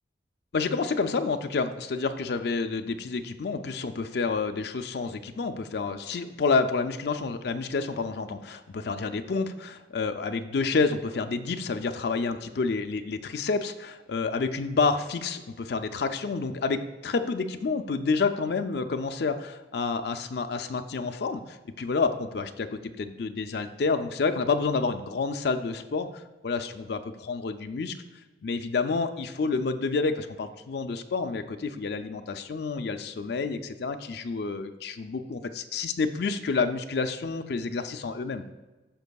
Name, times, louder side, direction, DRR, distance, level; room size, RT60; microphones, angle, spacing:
voice 1, 0.5-26.1 26.4-27.9 28.4-38.4, left 4 dB, 60° left, 7 dB, 0.4 m, -29 dB
13.0 x 5.3 x 2.3 m, 1.1 s
head